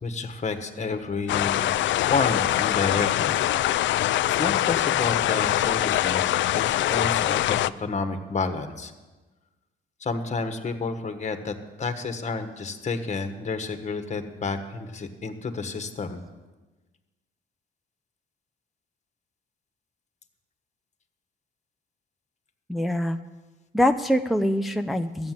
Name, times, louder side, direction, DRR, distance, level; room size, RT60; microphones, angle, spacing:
voice 1, 0.0-1.7 2.1-3.4 3.7-4.1 4.4-8.9 10.0-16.2, left 4 dB, 35° left, 8 dB, 1.4 m, -30 dB
sound 1, 1.3-7.7, left 13 dB, 70° left, 0.4 m, -23 dB
voice 2, 22.7-23.2 23.7-25.3, left 1 dB, ahead, 6 dB, 0.6 m, -24 dB
13.0 x 8.8 x 7.6 m, 1.2 s
cardioid pair, 90°, 20 cm